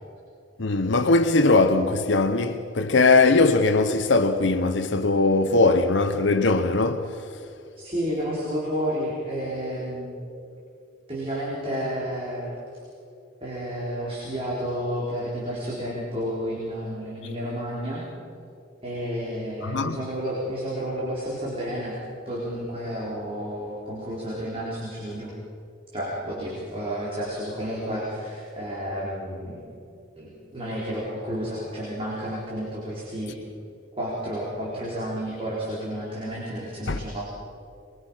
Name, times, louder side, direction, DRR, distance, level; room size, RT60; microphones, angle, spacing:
voice 1, 0.6-7.1 19.6-20.0 36.9-37.0, left 3 dB, 75° left, 0.9 m, -20 dB
voice 2, 7.8-10.2 11.1-12.5 13.4-18.1 18.8-22.0 22.3-25.3 25.9-29.7 30.2-33.3 34.0-37.3, equal, 30° right, 4.3 m, -31 dB
25.0 x 22.0 x 5.7 m
head